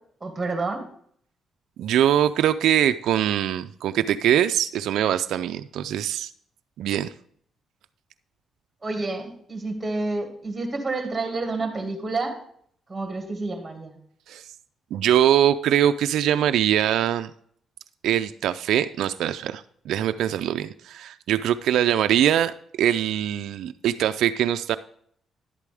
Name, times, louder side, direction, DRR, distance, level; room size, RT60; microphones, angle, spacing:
voice 1, 0.2-0.9 8.8-12.4 12.9-14.0, right 3 dB, 15° right, 3 dB, 2.2 m, -29 dB
voice 2, 1.8-6.3 6.8-7.1 14.3-14.4 14.9-17.3 18.0-24.8, right 10 dB, 80° right, 9 dB, 0.3 m, -22 dB
11.0 x 8.2 x 3.5 m, 0.63 s
cardioid pair, 90°, 0 cm